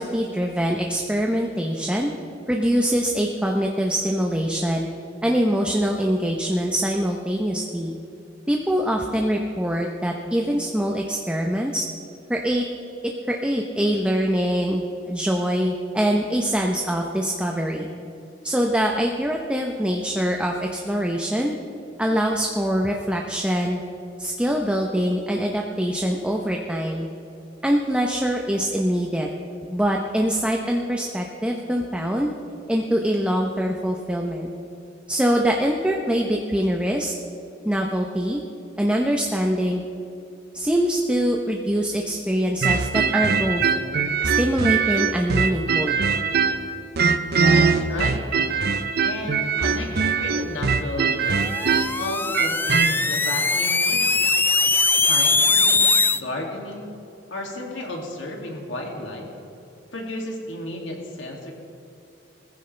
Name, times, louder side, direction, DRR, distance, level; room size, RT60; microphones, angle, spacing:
voice 1, 0.0-2.1 2.5-4.9 5.2-8.0 8.5-11.8 12.3-12.6 13.3-17.9 18.4-21.5 22.0-23.8 24.2-27.1 27.6-29.3 29.7-32.3 32.7-34.5 35.1-37.1 37.6-38.4 38.8-39.8 40.5-43.7 44.4-46.0, equal, 5° right, 1 dB, 0.8 m, -23 dB
sound 1, 42.6-46.7 47.0-52.9, right 5 dB, 55° right, 0.7 m, -21 dB
voice 2, 47.4-48.3 49.0-51.5 52.0-54.2 55.1-56.8 57.3-59.3 59.9-61.5, left 1 dB, 75° left, 0 dB, 2.5 m, -33 dB
sound 2, 51.4-56.2, left 3 dB, 10° left, 0.3 m, -21 dB
20.5 x 15.0 x 3.4 m, 2.6 s
head